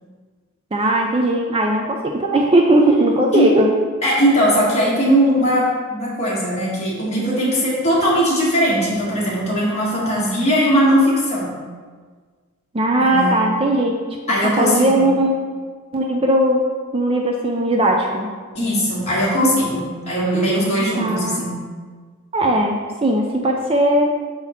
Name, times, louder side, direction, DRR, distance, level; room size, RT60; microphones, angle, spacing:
voice 1, 0.7-3.7 12.7-13.9 14.6-15.4 15.9-16.6 16.9-18.3 21.0-21.4 22.3-24.1, right 1 dB, 25° right, 1 dB, 0.4 m, -18 dB
voice 2, 4.0-5.6 5.9-11.5 13.0-13.4 14.3-15.0 18.5-21.6, equal, 30° left, -7 dB, 1.8 m, -19 dB
7.0 x 4.0 x 4.3 m, 1.5 s
head